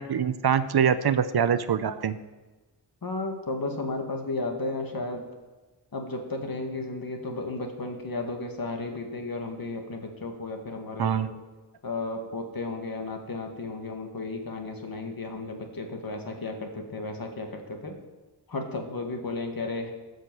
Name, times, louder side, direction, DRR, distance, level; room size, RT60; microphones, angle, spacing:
voice 1, 0.0-2.2 11.0-11.3, right 7 dB, 65° right, 13 dB, 0.7 m, -24 dB
voice 2, 3.0-5.2 5.9-11.3 11.8-17.9 18.5-19.9, left 2 dB, 55° left, 3 dB, 2.1 m, -33 dB
13.5 x 6.5 x 7.8 m, 1.2 s
wide cardioid pair, 65°, 41 cm